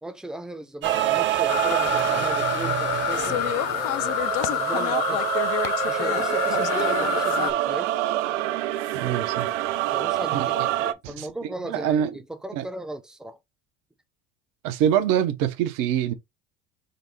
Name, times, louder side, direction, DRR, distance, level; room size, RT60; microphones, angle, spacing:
voice 1, 0.0-5.4 5.9-8.0 9.9-13.4, right 1 dB, ahead, 0.6 m, -37 dB
sound 1, 0.8-5.2, right 7 dB, 35° right, 0.8 m, -33 dB
sound 2, 0.8-10.9, right 14 dB, 90° right, 0.5 m, -26 dB
sound 3, 1.5-7.5, left 14 dB, 70° left, 0.5 m, -27 dB
voice 2, 8.9-9.5 10.3-10.4 11.0-11.3 11.7-12.1 12.5-12.6 14.6-16.1, right 10 dB, 65° right, 0.8 m, -24 dB
5.2 x 2.0 x 4.0 m
hypercardioid pair, 80°, 35 cm